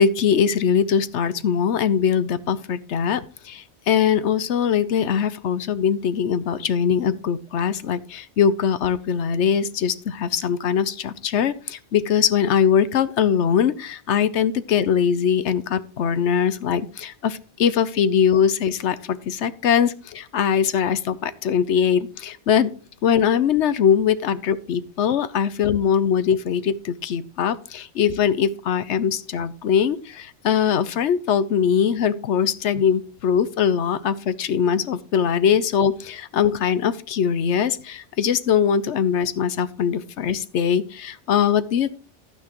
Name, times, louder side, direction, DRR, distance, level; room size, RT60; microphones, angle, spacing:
voice 1, 0.0-22.7 23.0-42.0, left 7 dB, 85° left, 14 dB, 1.1 m, -21 dB
12.0 x 9.5 x 3.0 m, 0.38 s
omnidirectional pair, 1.2 m